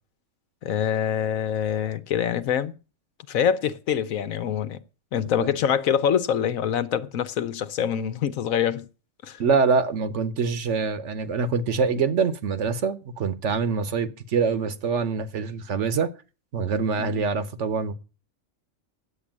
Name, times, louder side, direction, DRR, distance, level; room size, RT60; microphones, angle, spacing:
voice 1, 0.6-2.7 3.3-4.8 5.1-8.8 9.2-9.4 17.0-17.2, left 8 dB, 85° left, 1.3 m, -25 dB
voice 2, 9.4-16.1 16.5-17.9, right 5 dB, 65° right, 1.2 m, -25 dB
9.6 x 8.3 x 7.3 m
omnidirectional pair, 1.4 m